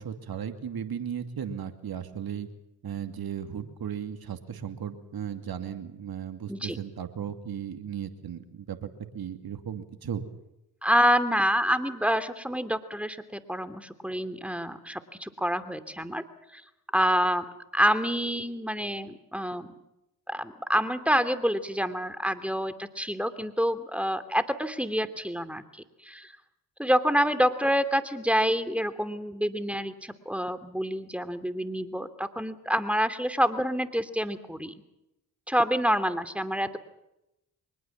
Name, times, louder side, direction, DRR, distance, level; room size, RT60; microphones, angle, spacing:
voice 1, 0.0-2.5 2.8-10.2, right 8 dB, 55° right, 8 dB, 2.6 m, -36 dB
voice 2, 10.8-16.2 16.5-16.6 16.9-17.4 17.7-19.7 20.3-25.6 26.0-26.3 26.8-34.7 35.5-36.8, equal, 5° right, 10 dB, 2.9 m, -27 dB
23.5 x 20.5 x 7.4 m, 0.87 s
hypercardioid pair, 45°, 43 cm